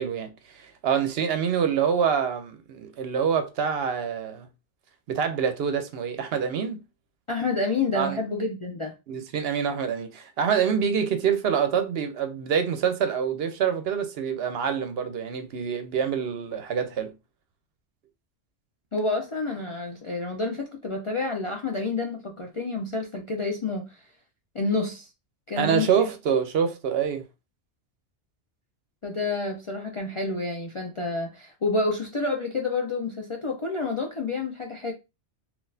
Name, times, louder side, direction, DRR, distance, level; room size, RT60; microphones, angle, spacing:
voice 1, 0.0-4.5 5.1-6.8 7.9-8.2 9.1-17.1 25.6-27.2, right 7 dB, 65° right, 0.8 m, -26 dB
voice 2, 7.3-8.9 18.9-24.0 24.5-25.1 25.5-26.1 29.0-34.9, left 3 dB, 50° left, 0.4 m, -29 dB
3.8 x 2.4 x 2.6 m
omnidirectional pair, 1.2 m